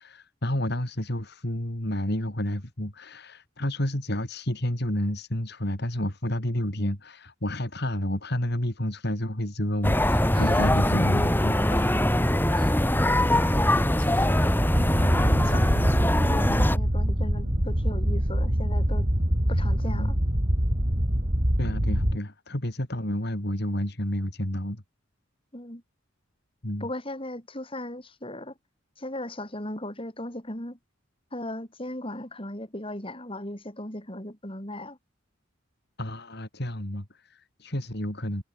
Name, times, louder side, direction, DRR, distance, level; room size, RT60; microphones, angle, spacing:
voice 1, 0.0-12.0 19.9-20.1 21.6-24.8 26.6-26.9 36.0-38.4, left 1 dB, 55° left, 3.7 m, -30 dB
sound 1, 9.8-16.8, left 1 dB, 10° left, 3.1 m, -22 dB
voice 2, 13.7-14.4 15.2-19.1 19.5-20.2 25.5-25.8 26.8-28.5 29.0-30.8 31.3-35.0, left 1 dB, 25° left, 6.7 m, -37 dB
sound 2, 14.7-22.2, equal, 40° right, 3.9 m, -25 dB
head